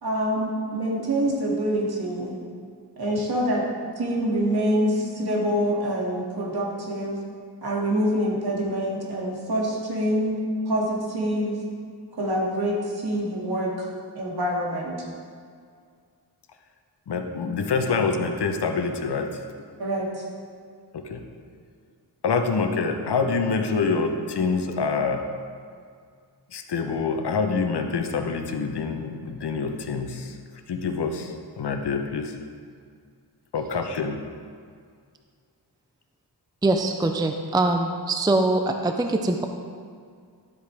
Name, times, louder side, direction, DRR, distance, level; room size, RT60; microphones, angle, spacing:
voice 1, 0.0-2.4 3.0-3.6 4.0-7.2 7.6-10.4 10.7-11.6 12.2-15.0 19.8-20.2, equal, 65° right, -4 dB, 2.3 m, -26 dB
voice 2, 17.1-19.3 20.9-21.2 22.2-25.3 26.5-30.4 30.7-32.3 33.5-34.2, left 4 dB, 75° left, 5 dB, 0.9 m, -26 dB
voice 3, 36.6-39.4, right 2 dB, 10° right, 5 dB, 0.4 m, -23 dB
12.5 x 8.2 x 3.4 m, 2.1 s
wide cardioid pair, 140°, 40 cm